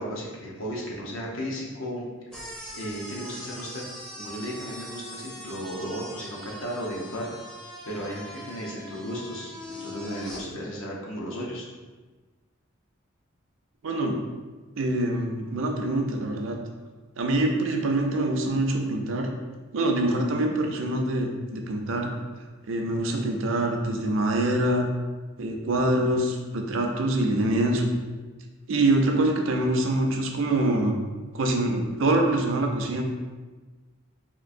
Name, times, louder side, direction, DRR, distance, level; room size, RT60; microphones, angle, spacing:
voice 1, 0.0-2.1 2.7-3.8 4.2-7.3 7.9-11.7, equal, 75° left, -3 dB, 0.7 m, -34 dB
sound 1, 2.3-10.4, equal, 5° left, 0.5 m, -41 dB
voice 2, 13.8-14.2 14.8-16.6 17.2-19.3 19.7-22.1 22.6-24.9 25.4-27.9 28.7-31.0 31.3-33.0, right 1 dB, 65° right, 3 dB, 0.4 m, -25 dB
3.7 x 2.6 x 2.5 m, 1.3 s
head